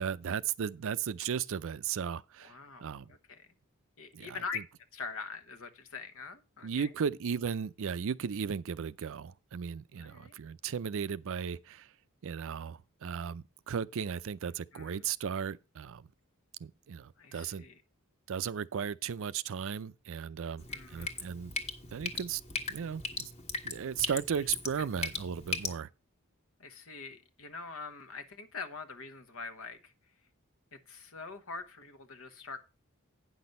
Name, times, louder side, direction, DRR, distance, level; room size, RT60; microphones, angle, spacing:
voice 1, 0.0-2.6 2.8-3.1 4.1-4.6 6.6-11.9 12.2-16.1 16.6-17.6 18.3-21.5 21.9-22.4 22.7-23.3 23.6-25.9, right 7 dB, 65° right, 0.4 m, -36 dB
voice 2, 2.4-3.5 4.0-4.6 4.9-6.9 10.0-10.4 14.7-15.0 17.2-17.8 20.7-21.2 26.6-29.9 30.7-32.6, left 4 dB, 70° left, 1.1 m, -44 dB
Drip, 20.6-25.7, left 3 dB, 30° left, 1.4 m, -38 dB
9.3 x 6.1 x 5.3 m
head